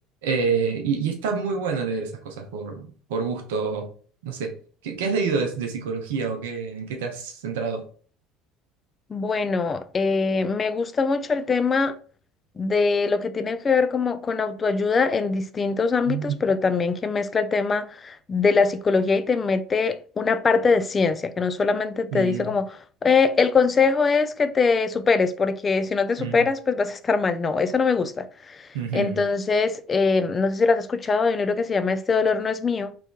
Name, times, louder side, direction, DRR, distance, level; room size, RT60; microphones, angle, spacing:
voice 1, 0.2-3.9 4.2-4.6 4.8-7.8 16.1-16.4 22.1-22.5 26.2-26.4 28.7-29.3, right 5 dB, 65° right, 0.6 m, -27 dB
voice 2, 9.1-11.9 12.6-32.9, left 4 dB, 25° left, 0.3 m, -22 dB
3.0 x 3.0 x 2.2 m
figure-of-eight pair, 65°, 0 cm